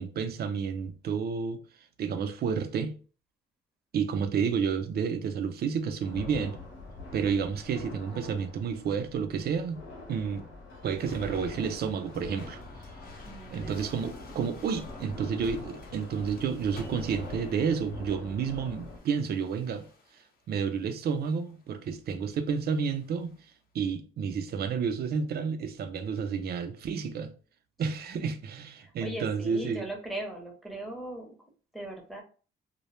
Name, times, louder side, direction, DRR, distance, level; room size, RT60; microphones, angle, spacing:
voice 1, 0.0-1.6 2.0-2.9 3.9-6.6 7.1-9.8 10.1-10.4 10.8-12.6 13.5-19.9 20.5-23.4 23.7-27.3 27.8-29.8, right 6 dB, 55° right, 0.4 m, -30 dB
sound 1, 6.0-19.0, left 2 dB, 85° left, 0.9 m, -45 dB
sound 2, 11.0-20.3 21.0-21.6 22.7-23.3, left 2 dB, 50° left, 0.7 m, -50 dB
voice 2, 13.2-13.8 27.9-28.4 28.7-31.4 31.7-32.2, right 1 dB, ahead, 0.7 m, -39 dB
2.1 x 2.0 x 3.0 m
cardioid pair, 90°, 20 cm